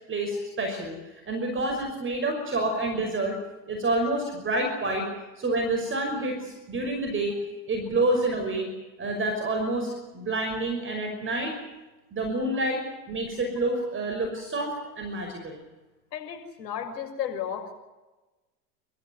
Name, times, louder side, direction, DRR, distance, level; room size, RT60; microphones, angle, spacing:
voice 1, 0.1-1.0 1.3-3.3 3.7-5.1 5.4-7.4 7.7-8.7 9.0-11.6 12.1-12.8 13.1-15.6, right 2 dB, 25° right, 3 dB, 5.8 m, -28 dB
voice 2, 16.1-17.7, left 8 dB, 75° left, 4 dB, 6.4 m, -34 dB
28.5 x 14.5 x 9.5 m, 1.1 s
hypercardioid pair, 95°, 49 cm